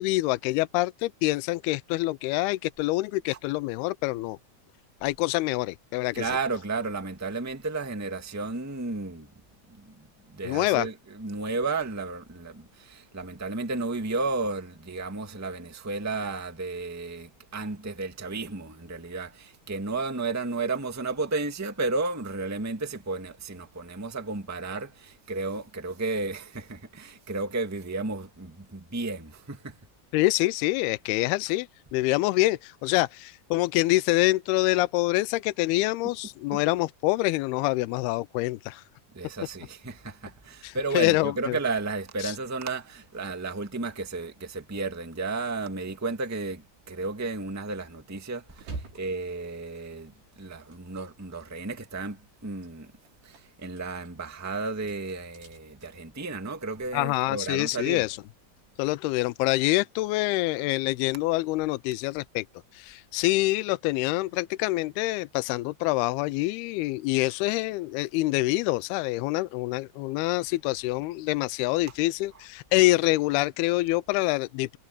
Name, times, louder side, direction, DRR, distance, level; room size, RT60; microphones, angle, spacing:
voice 1, 0.0-4.4 5.0-6.3 10.4-10.9 30.1-31.7 31.9-38.8 40.6-41.3 42.2-42.4 56.9-58.2 58.8-62.4 62.7-74.8, left 19 dB, 80° left, 2.5 m, -26 dB
voice 2, 6.1-9.3 9.7-29.8 36.5-36.6 39.1-50.1 50.4-52.9 53.2-58.0, right 3 dB, 10° right, 1.1 m, -33 dB
sound 1, 48.5-51.5 51.8-58.2, right 3 dB, 85° right, 7.8 m, -48 dB
omnidirectional pair, 4.6 m